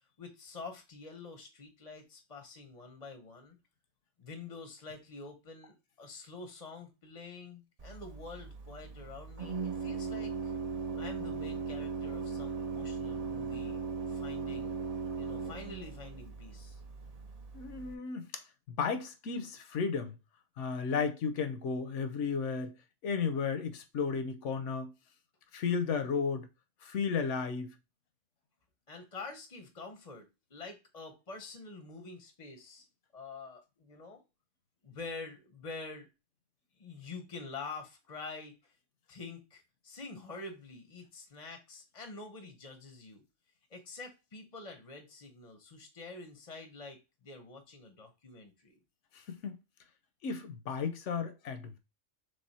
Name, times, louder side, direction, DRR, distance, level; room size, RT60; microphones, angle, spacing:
voice 1, 0.2-3.6 4.2-10.5 11.0-14.8 15.2-16.8 28.9-32.9 33.1-34.2 34.8-36.1 36.8-38.7 39.1-43.2 43.7-48.7, left 3 dB, 35° left, 0.7 m, -47 dB
Organ, 7.8-17.9, right 4 dB, 45° right, 0.5 m, -38 dB
voice 2, 17.5-18.4 18.8-20.2 20.6-22.8 23.0-24.9 25.5-26.5 26.8-27.7 49.1-49.6 50.2-51.8, left 5 dB, 65° left, 0.9 m, -34 dB
3.4 x 3.3 x 4.1 m
omnidirectional pair, 1.4 m